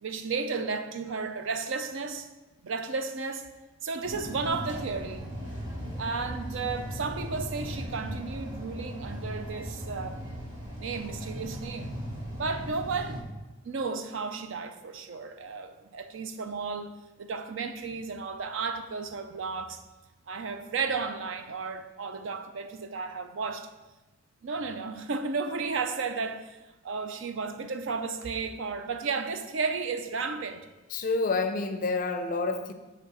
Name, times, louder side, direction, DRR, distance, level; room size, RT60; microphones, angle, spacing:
voice 1, 0.0-2.3 2.6-3.5 3.8-5.3 6.0-10.2 10.8-11.9 12.4-13.3 13.6-16.9 17.2-19.8 20.3-23.7 24.4-30.7, right 4 dB, 65° right, 0.5 m, -33 dB
sound 1, 4.0-13.2, equal, 20° right, 1.5 m, -38 dB
voice 2, 30.9-32.7, left 3 dB, 40° left, 0.4 m, -28 dB
7.2 x 3.4 x 4.8 m
head